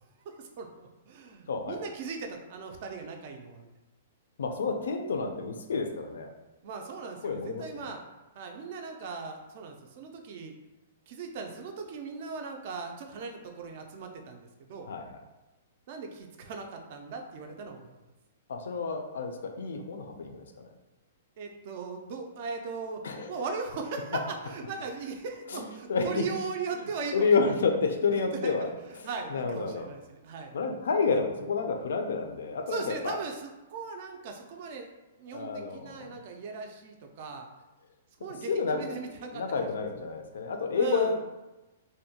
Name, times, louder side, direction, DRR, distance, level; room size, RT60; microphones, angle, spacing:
voice 1, 0.3-3.7 6.6-8.0 8.4-10.5 11.1-14.9 15.9-17.9 21.4-23.0 23.3-27.3 28.1-28.7 29.0-30.5 32.7-34.9 35.2-37.5 38.2-39.4 40.7-41.2, right 4 dB, 40° right, 4 dB, 0.3 m, -38 dB
voice 2, 1.5-1.8 4.4-6.3 7.2-7.9 14.9-15.2 18.5-20.4 23.0-23.3 25.5-25.6 25.9-26.2 27.1-28.7 29.0-29.9 30.5-33.2 35.3-36.2 38.5-38.8 39.3-41.2, left 4 dB, 85° left, 5 dB, 0.4 m, -29 dB
2.6 x 2.1 x 2.7 m, 1.1 s
hypercardioid pair, 170°, 0 cm